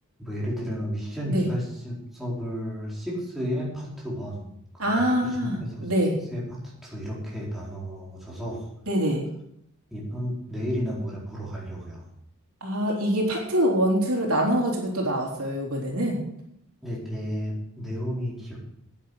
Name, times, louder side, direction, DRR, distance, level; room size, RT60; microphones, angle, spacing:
voice 1, 0.2-4.5 4.9-5.9 6.3-8.7 9.9-12.1 16.8-18.6, equal, ahead, -6 dB, 4.3 m, -32 dB
voice 2, 4.8-6.2 8.9-9.2 12.6-16.2, equal, 75° right, -1 dB, 3.5 m, -24 dB
11.0 x 9.6 x 6.4 m, 0.75 s
head